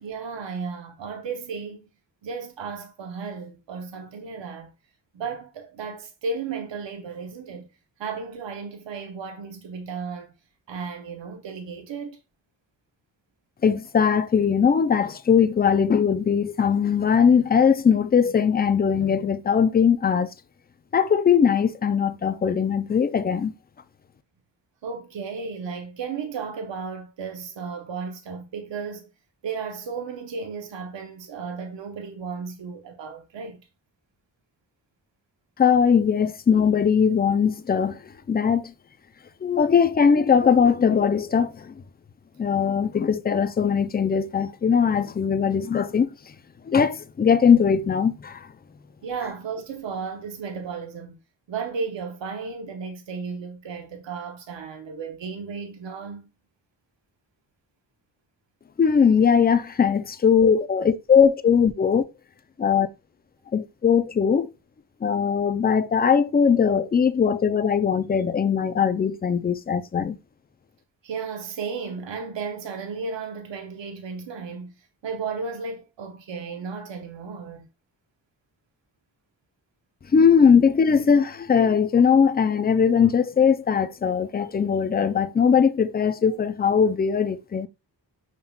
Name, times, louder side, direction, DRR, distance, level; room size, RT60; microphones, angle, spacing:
voice 1, 0.0-1.9 2.2-4.7 5.1-7.7 8.0-10.3 10.7-12.2 24.8-29.1 29.4-33.7 49.0-51.2 51.5-56.3 71.0-74.7 75.0-77.7, right 5 dB, 75° right, 0.9 m, -34 dB
voice 2, 13.6-20.3 20.9-23.5 35.6-38.0 38.3-38.7 39.4-41.8 42.4-46.3 46.7-48.5 58.8-62.0 62.6-62.9 63.5-64.5 65.0-70.2 80.1-87.7, left 7 dB, 25° left, 0.3 m, -20 dB
5.5 x 3.7 x 2.3 m
cardioid pair, 65°, 44 cm